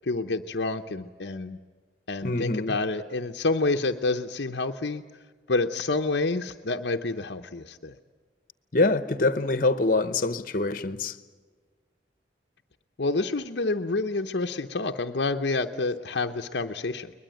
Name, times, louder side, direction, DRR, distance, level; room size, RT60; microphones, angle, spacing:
voice 1, 0.0-1.6 2.1-5.0 5.5-8.0 13.0-17.1, left 3 dB, 65° left, 0.7 m, -28 dB
voice 2, 2.2-2.8 8.7-11.2, left 2 dB, 45° left, 1.0 m, -25 dB
22.0 x 21.0 x 9.0 m
head